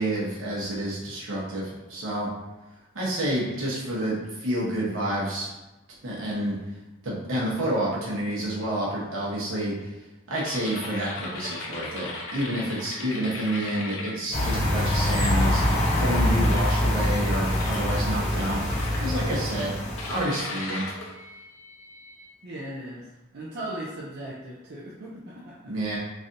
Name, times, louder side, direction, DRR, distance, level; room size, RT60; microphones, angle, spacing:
voice 1, 0.0-2.3 2.9-5.5 6.0-6.5 7.0-9.9 10.3-18.6 19.0-19.8 20.1-20.9 25.7-26.0, right 1 dB, 80° right, -5 dB, 0.9 m, -29 dB
sound 1, 10.3-14.9 15.4-15.8 16.4-17.2 17.6-18.0 18.7-19.4 20.0-22.3, left 2 dB, 80° left, 0.6 m, -38 dB
sound 2, 14.3-20.2, left 1 dB, 35° left, 0.6 m, -24 dB
voice 2, 22.4-23.0 23.3-25.7, right 1 dB, 55° right, -5 dB, 0.5 m, -37 dB
3.2 x 2.5 x 2.5 m, 1.0 s
head